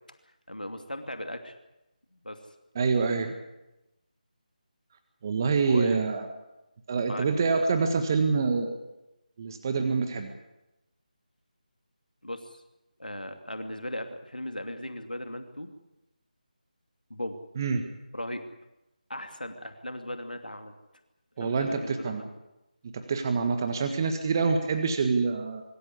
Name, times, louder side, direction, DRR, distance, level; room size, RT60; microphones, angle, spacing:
voice 1, 0.5-1.6 2.1-2.4 5.6-6.0 7.1-7.3 12.2-12.6 13.0-15.7 17.1-17.4 18.1-18.4 19.1-20.7 21.4-22.3, left 1 dB, 85° left, 6 dB, 2.6 m, -37 dB
voice 2, 2.7-3.3 5.2-6.3 6.9-8.8 9.4-10.3 17.6-17.9 21.4-22.2 22.8-25.6, right 4 dB, 25° right, 6 dB, 1.6 m, -26 dB
24.5 x 14.5 x 9.8 m, 0.96 s
figure-of-eight pair, 160°, 5 cm